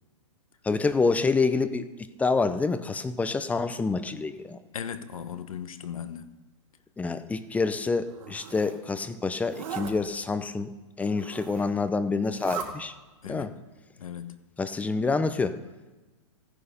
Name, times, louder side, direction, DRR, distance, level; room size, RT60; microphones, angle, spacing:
voice 1, 0.6-4.6 7.0-12.9 13.3-13.5 14.6-15.6, left 4 dB, 10° left, 12 dB, 0.7 m, -27 dB
voice 2, 4.7-6.3 13.2-13.5 14.0-14.4, left 8 dB, 80° left, 11 dB, 1.2 m, -37 dB
Zipper (clothing), 8.0-8.8 9.4-9.9 11.0-11.7 12.2-12.7, right 8 dB, 75° right, 3.8 m, -39 dB
15.5 x 9.8 x 5.2 m, 1.2 s
hypercardioid pair, 130°, 17 cm